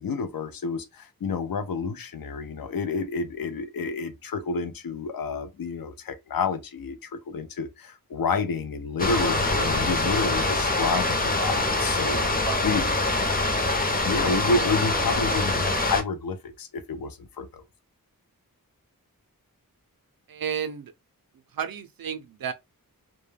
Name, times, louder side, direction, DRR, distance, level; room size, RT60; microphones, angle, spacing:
voice 1, 0.0-12.2 12.6-12.8 14.0-17.6, left 4 dB, 70° left, 0.5 m, -29 dB
sound 1, 9.0-16.0, left 2 dB, 25° left, 0.6 m, -24 dB
voice 2, 12.4-12.8 20.3-20.9 21.5-22.5, right 8 dB, 70° right, 0.5 m, -32 dB
2.2 x 2.1 x 3.2 m
wide cardioid pair, 55°, 36 cm